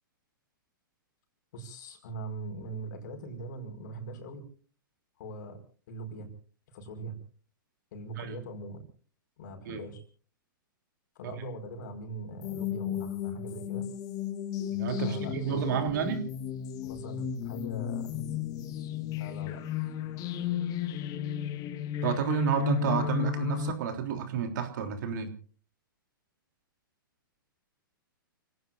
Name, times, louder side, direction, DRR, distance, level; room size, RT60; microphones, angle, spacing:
voice 1, 1.5-4.4 5.2-5.6 5.9-6.3 6.7-7.1 7.9-8.8 9.4-10.0 11.2-13.8 15.0-16.2 16.8-18.1 19.2-19.6, right 2 dB, 55° left, 6 dB, 5.2 m, -41 dB
sound 1, 12.4-23.7, left 10 dB, 30° left, 1.5 m, -34 dB
voice 2, 14.7-16.2 22.0-25.3, right 7 dB, 55° right, 6 dB, 3.4 m, -30 dB
30.0 x 17.5 x 2.7 m, 0.42 s
hypercardioid pair, 115°, 12 cm